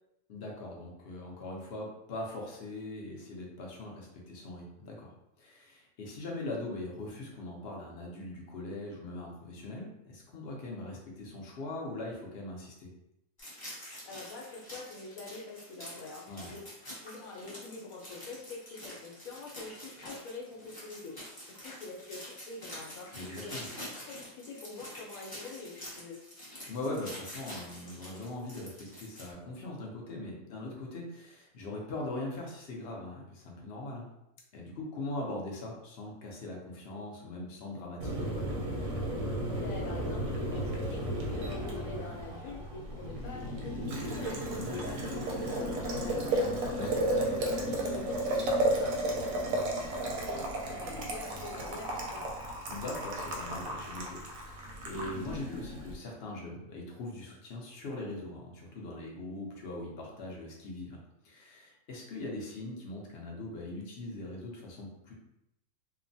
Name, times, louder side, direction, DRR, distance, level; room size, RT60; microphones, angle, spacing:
voice 1, 0.3-5.1 5.4-12.9 16.3-16.5 23.1-23.7 26.7-34.1 34.5-38.3 44.5-44.8 46.7-47.0 52.7-61.0 61.2-65.1, left 2 dB, 60° left, -1 dB, 0.8 m, -41 dB
sound 1, 13.4-29.3, equal, 20° left, 0.7 m, -46 dB
voice 2, 14.0-16.6 16.9-23.1 23.4-23.5 24.0-26.2 39.5-44.4 44.7-46.5 46.8-52.3, left 3 dB, 90° left, -1 dB, 1.1 m, -45 dB
Boiling, 38.0-55.9, right 1 dB, 85° right, 1.0 m, -33 dB
2.9 x 2.1 x 2.6 m, 0.85 s
omnidirectional pair, 1.4 m